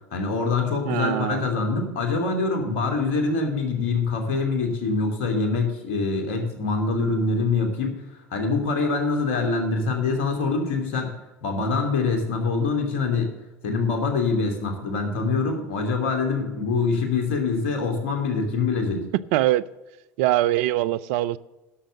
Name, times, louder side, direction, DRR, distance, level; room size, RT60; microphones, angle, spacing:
voice 1, 0.1-8.0 8.3-11.1 11.4-13.3 13.6-19.1, left 4 dB, 70° left, 2.7 m, -24 dB
voice 2, 0.8-1.4 19.3-19.6 20.2-21.4, right 15 dB, 65° right, 0.5 m, -22 dB
11.5 x 6.5 x 7.7 m
hypercardioid pair, 75°, 8 cm